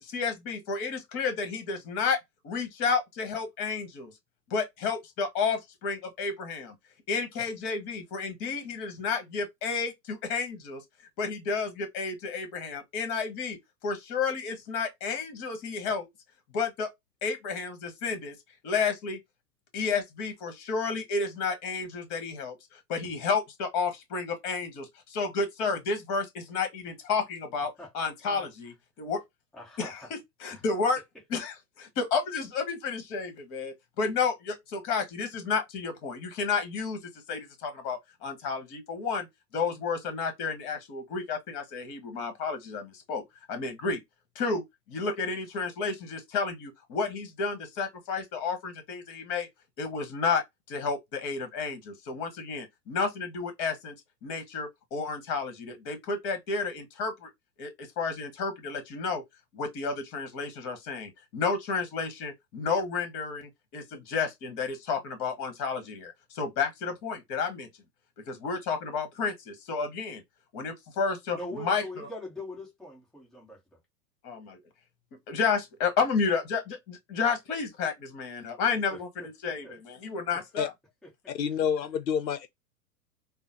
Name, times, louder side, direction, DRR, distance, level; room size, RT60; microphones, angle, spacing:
voice 1, 0.0-2.2 2.4-4.1 4.5-6.7 7.1-10.8 11.2-13.6 13.8-16.1 16.5-16.9 17.2-18.3 18.6-19.2 19.7-29.2 29.8-30.0 30.4-31.0 31.3-37.0 37.3-39.3 39.5-43.2 43.5-44.0 44.3-44.6 44.9-49.5 49.8-50.4 50.7-53.9 54.2-57.3 57.6-59.2 59.5-67.7 68.3-70.2 70.5-72.1 74.2-74.6 75.3-80.7, left 5 dB, 35° left, 1.3 m, -31 dB
voice 2, 27.8-28.5 29.5-30.1 30.5-30.6 71.3-73.8 78.9-79.7 80.3-80.4 81.2-81.3, left 1 dB, ahead, 0.7 m, -43 dB
voice 3, 81.3-82.5, left 7 dB, 85° left, 0.6 m, -28 dB
3.7 x 2.0 x 2.7 m
figure-of-eight pair, 105°, 49 cm